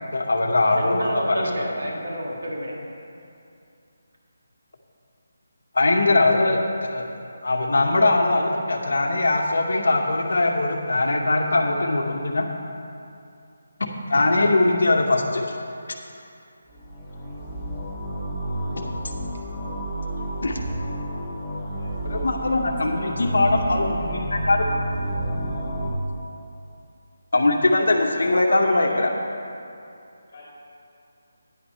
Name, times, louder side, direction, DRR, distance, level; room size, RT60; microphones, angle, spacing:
voice 1, 0.1-1.4 5.7-7.1 7.4-12.5 14.1-15.6 18.7-18.8 20.4-20.6 22.0-24.6 27.3-29.1, left 2 dB, 75° left, 3 dB, 0.9 m, -21 dB
voice 2, 0.6-2.8, equal, 75° right, -2 dB, 2.0 m, -30 dB
sound 1, 16.7-25.9, right 1 dB, 5° left, 0.8 m, -30 dB
voice 3, 21.7-22.5 22.8-24.2 28.2-29.0 30.3-30.4, left 1 dB, 30° left, -6 dB, 2.4 m, -39 dB
9.6 x 5.8 x 5.6 m, 2.5 s
hypercardioid pair, 180°, 0 cm